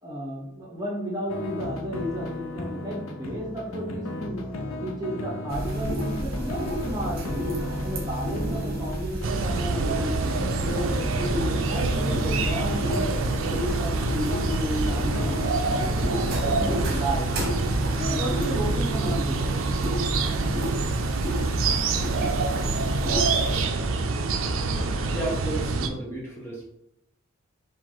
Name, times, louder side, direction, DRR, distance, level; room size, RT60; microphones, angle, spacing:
voice 1, 0.0-4.4 4.8-7.4 7.8-13.1 13.5-15.4 15.8-17.3 18.0-19.4, equal, 20° right, -3 dB, 1.0 m, -33 dB
sound 1, 1.3-19.4, left 1 dB, 75° left, 0.6 m, -36 dB
sound 2, 5.5-23.6, right 1 dB, 50° right, 1.0 m, -31 dB
sound 3, 9.2-25.9, right 3 dB, 65° right, 0.4 m, -26 dB
voice 2, 25.1-26.6, right 1 dB, 10° left, -5 dB, 0.8 m, -32 dB
4.6 x 2.5 x 3.8 m, 0.78 s
head